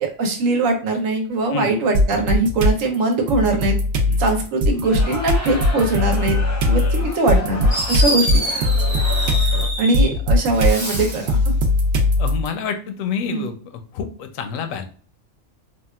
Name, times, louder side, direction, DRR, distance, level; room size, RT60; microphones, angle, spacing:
voice 1, 0.0-3.8 4.2-6.4 6.7-8.3 9.8-11.4 13.3-13.5, right 2 dB, 80° right, 3 dB, 1.1 m, -21 dB
sound 1, 1.9-2.8 3.3-12.5, left 1 dB, 65° right, 0.8 m, -19 dB
sound 2, 4.7-9.7, left 2 dB, 15° left, 0.6 m, -33 dB
Fireworks, 7.7-10.1 10.5-11.3, right 1 dB, 30° right, 0.8 m, -26 dB
voice 2, 12.2-13.5 13.9-14.9, left 6 dB, 85° left, 7 dB, 1.0 m, -27 dB
3.5 x 2.3 x 2.3 m, 0.43 s
omnidirectional pair, 1.4 m